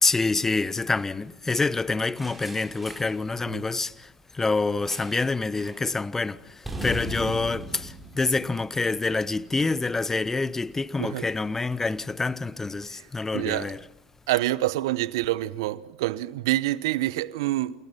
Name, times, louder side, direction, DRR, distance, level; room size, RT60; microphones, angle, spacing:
voice 1, 0.0-13.8, left 3 dB, 15° left, 1.0 m, -27 dB
sound 1, 2.2-3.2 4.9-5.3 5.6-5.8 6.6-9.0, right 1 dB, 10° right, 6.8 m, -38 dB
voice 2, 13.3-13.7 14.3-17.7, right 16 dB, 65° right, 1.0 m, -27 dB
29.0 x 28.0 x 5.9 m
figure-of-eight pair, 70°, 2 cm